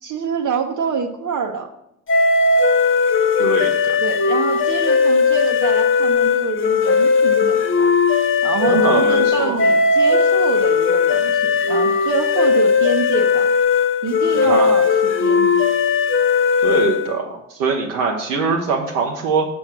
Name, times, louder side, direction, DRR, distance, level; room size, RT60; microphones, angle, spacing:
voice 1, 0.0-1.7 4.0-7.9 8.4-13.5 14.0-15.7, right 6 dB, 50° right, 4 dB, 0.8 m, -26 dB
sound 1, 2.1-17.2, left 5 dB, 30° left, 0.7 m, -17 dB
voice 2, 3.4-4.0 8.6-9.6 14.5-14.7 16.6-19.5, right 5 dB, 85° right, -1 dB, 0.8 m, -22 dB
6.1 x 4.3 x 5.9 m, 0.78 s
hypercardioid pair, 45°, 39 cm